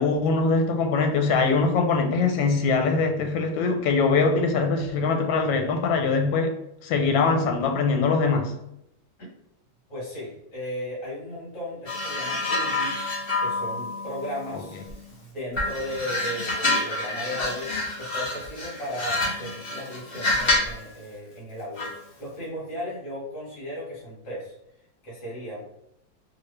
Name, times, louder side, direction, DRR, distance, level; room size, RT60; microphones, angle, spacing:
voice 1, 0.0-6.5 6.8-8.5, left 4 dB, 90° left, 1.4 m, -22 dB
voice 2, 9.9-13.1 13.4-14.7 15.1-17.7 18.0-24.5 25.0-25.6, equal, 60° left, 2.3 m, -36 dB
sound 1, 11.9-15.1 15.5-20.8 21.8-22.0, left 2 dB, 35° left, 1.0 m, -28 dB
3.9 x 2.6 x 3.2 m
omnidirectional pair, 2.1 m